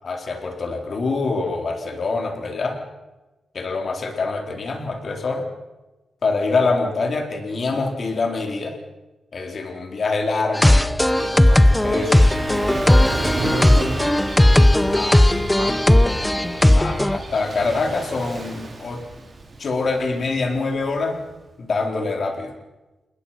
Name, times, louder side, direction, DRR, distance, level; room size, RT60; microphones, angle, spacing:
voice 1, 0.0-2.8 3.5-5.5 6.2-8.8 9.3-10.8 11.8-12.7 13.4-13.7 14.8-15.4 16.6-19.0 19.6-21.2 21.6-22.5, left 3 dB, 50° left, 3 dB, 4.0 m, -25 dB
sound 1, 10.6-17.2, left 1 dB, 10° left, 0.9 m, -16 dB
Gull seagull / Waves surf, 10.8-21.3, right 3 dB, 35° right, 4.2 m, -34 dB
voice 2, 11.1-12.0 13.1-14.1 15.6-15.8, right 4 dB, 85° right, 4 dB, 3.3 m, -31 dB
28.0 x 20.5 x 5.8 m, 1.1 s
wide cardioid pair, 120°, 0 cm